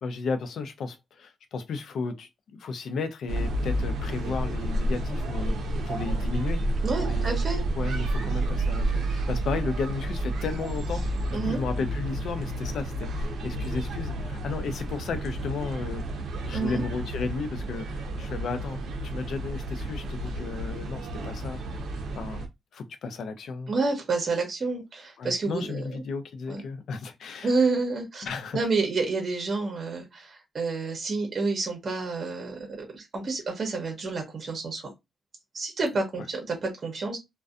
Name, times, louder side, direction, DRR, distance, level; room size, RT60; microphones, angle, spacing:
voice 1, 0.0-5.6 5.9-6.6 7.0-7.4 7.8-16.1 16.4-21.6 22.1-22.4 22.7-23.7 25.2-27.5 28.2-28.6 36.2-36.3, left 4 dB, 70° left, 0.4 m, -34 dB
sound 1, 3.3-22.5, right 1 dB, 85° right, 0.6 m, -30 dB
voice 2, 6.8-7.6 11.3-11.6 16.5-16.8 23.7-26.0 26.5-26.6 27.4-28.3 28.5-32.7 32.9-34.8 35.5-37.2, right 3 dB, 40° right, 0.7 m, -29 dB
2.5 x 2.2 x 2.4 m
wide cardioid pair, 140°, 0 cm